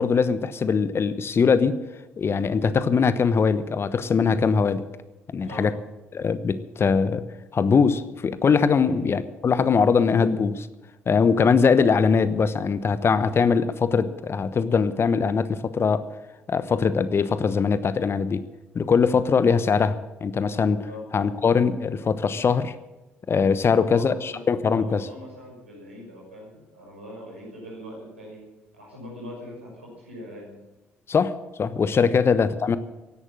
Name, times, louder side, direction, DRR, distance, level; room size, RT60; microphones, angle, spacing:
voice 1, 0.0-1.8 2.2-4.8 5.3-5.7 6.1-7.2 7.5-10.7 11.1-16.0 16.5-18.4 18.7-20.8 21.1-22.7 23.3-25.1 31.1-32.8, left 5 dB, 40° left, 14 dB, 1.0 m, -21 dB
voice 2, 23.7-28.4 28.7-30.5, equal, 90° right, -4 dB, 6.1 m, -42 dB
16.0 x 11.5 x 7.5 m, 1.1 s
figure-of-eight pair, 45°, 6 cm